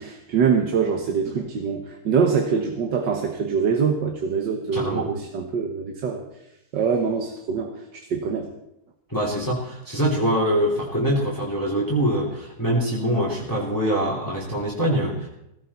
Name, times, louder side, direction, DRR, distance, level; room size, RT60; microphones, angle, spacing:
voice 1, 0.0-6.2 6.7-8.5, right 6 dB, 90° right, 4 dB, 2.0 m, -24 dB
voice 2, 4.7-5.2 9.1-15.3, equal, 10° left, -3 dB, 2.8 m, -24 dB
17.0 x 16.5 x 4.2 m, 0.85 s
omnidirectional pair, 1.9 m